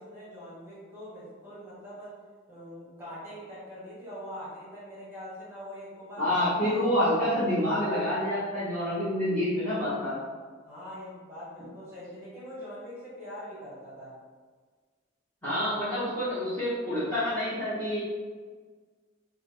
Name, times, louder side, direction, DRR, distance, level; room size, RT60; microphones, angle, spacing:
voice 1, 0.0-2.2 2.5-6.4 6.6-6.8 10.6-14.2, equal, 10° right, -10 dB, 1.0 m, -43 dB
voice 2, 6.2-10.2 15.4-18.0, left 1 dB, 10° left, -14 dB, 0.9 m, -27 dB
3.3 x 2.0 x 3.2 m, 1.5 s
head